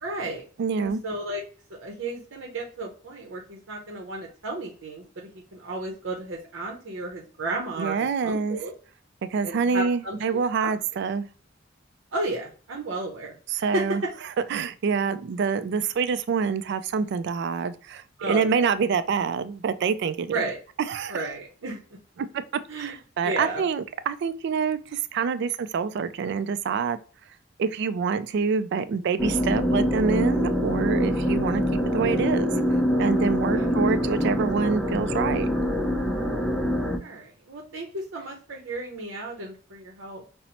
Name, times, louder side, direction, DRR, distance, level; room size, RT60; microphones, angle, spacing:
voice 1, 0.0-0.5 0.8-1.4 1.7-8.7 9.4-10.2 10.6-10.7 12.1-13.8 18.2-18.7 20.3-20.6 21.1-21.8 22.7-22.9 23.2-23.6 33.5-33.7 37.0-40.2, right 2 dB, 85° right, -1 dB, 0.7 m, -33 dB
voice 2, 0.6-1.0 7.8-8.6 9.3-11.2 13.5-14.0 14.5-20.3 20.9-21.3 22.2-27.0 27.6-31.6 31.9-32.5 33.0-35.5, right 5 dB, 60° right, 13 dB, 0.3 m, -26 dB
sound 1, 29.2-37.0, equal, ahead, 0.4 m, -24 dB
5.3 x 2.0 x 2.8 m, 0.40 s
head